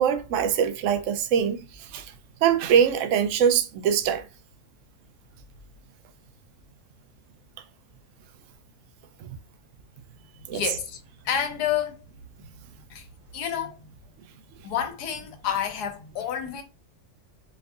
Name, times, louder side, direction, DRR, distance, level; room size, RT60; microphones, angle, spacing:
voice 1, 0.0-1.6 1.9-2.0 2.4-4.2 10.5-10.6, right 8 dB, 65° right, 0.8 m, -22 dB
voice 2, 10.5-11.0 11.2-12.0 12.9-13.0 13.3-13.8 14.6-16.6, left 9 dB, 85° left, 1.3 m, -29 dB
4.5 x 2.6 x 2.4 m
omnidirectional pair, 1.7 m